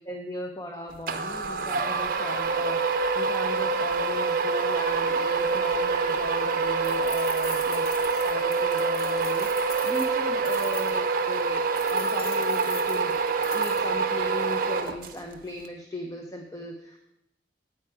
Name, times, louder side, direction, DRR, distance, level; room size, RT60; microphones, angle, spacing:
voice 1, 0.0-13.2 13.5-17.0, left 1 dB, 20° left, 3 dB, 0.7 m, -38 dB
sound 1, 1.1-15.3, right 4 dB, 50° right, 0.7 m, -26 dB
sound 2, 6.8-11.0 11.8-13.9, left 4 dB, 55° left, 1.5 m, -42 dB
9.3 x 8.6 x 4.7 m, 0.88 s
head